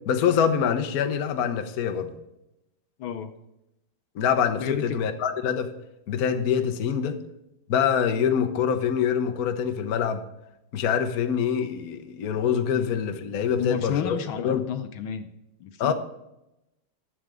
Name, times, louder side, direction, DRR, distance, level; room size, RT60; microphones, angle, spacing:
voice 1, 0.0-2.1 4.1-5.7 6.1-7.2 7.7-10.2 10.7-14.2 14.4-14.6 15.8-15.9, left 7 dB, 55° left, 7 dB, 1.1 m, -25 dB
voice 2, 3.0-3.3 4.6-5.0 12.7-12.9 13.6-15.3 15.6-15.9, left 9 dB, 70° left, 8 dB, 1.5 m, -31 dB
11.5 x 7.9 x 4.9 m, 0.88 s
omnidirectional pair, 2.4 m